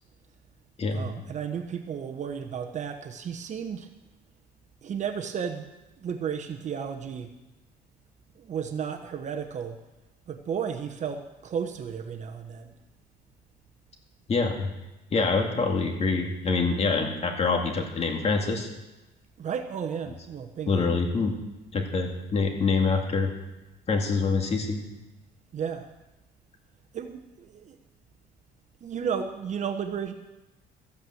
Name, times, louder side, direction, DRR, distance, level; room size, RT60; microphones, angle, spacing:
voice 1, 0.9-3.9 4.8-5.7 6.0-7.3 8.4-9.8 10.3-12.7 19.4-20.9 25.5-25.9 26.9-27.8 28.8-30.1, right 7 dB, 45° right, 5 dB, 1.0 m, -33 dB
voice 2, 14.3-14.7 15.1-18.7 20.7-21.4 21.7-23.3 23.9-24.8, left 4 dB, 40° left, 3 dB, 2.1 m, -25 dB
14.0 x 8.7 x 7.8 m, 1.0 s
cardioid pair, 110°, 17 cm